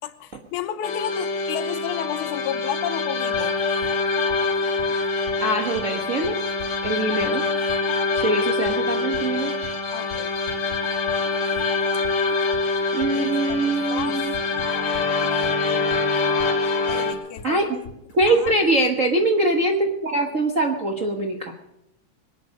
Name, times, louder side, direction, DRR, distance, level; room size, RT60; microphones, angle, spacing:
voice 1, 0.0-3.6 9.9-10.4 13.1-15.6 16.9-17.8 18.3-18.5, left 11 dB, 75° left, 9 dB, 2.3 m, -33 dB
sound 1, 0.8-17.1, left 3 dB, 60° left, 3.3 m, -25 dB
sound 2, 3.3-18.8, left 4 dB, 40° left, 4.3 m, -43 dB
voice 2, 5.4-6.4 6.8-7.4 8.1-9.5 12.9-14.3 17.4-17.8 18.1-21.5, right 2 dB, 80° right, 2 dB, 0.7 m, -23 dB
23.0 x 9.6 x 6.4 m, 0.85 s
omnidirectional pair, 3.7 m